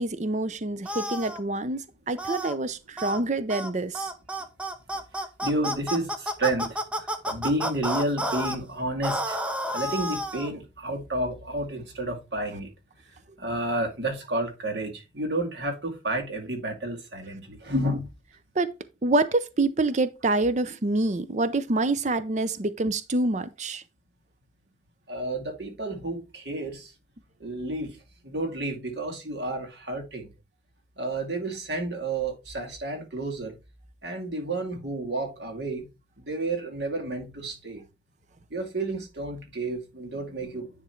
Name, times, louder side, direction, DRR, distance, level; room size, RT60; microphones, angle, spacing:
voice 1, 0.0-4.1 18.6-18.7 19.0-23.8, right 2 dB, 40° right, 0.6 m, -26 dB
sound 1, 0.8-1.4 2.2-2.5 3.0-3.2 3.5-3.7 3.9-8.6 9.0-10.5, equal, 5° right, 0.8 m, -30 dB
voice 2, 5.4-9.4 9.7-12.7 13.4-18.1 25.1-26.9 27.4-30.3 31.0-33.6 34.0-35.9 36.2-37.8 38.5-40.7, right 2 dB, 70° right, 2.3 m, -31 dB
10.0 x 3.7 x 4.4 m
head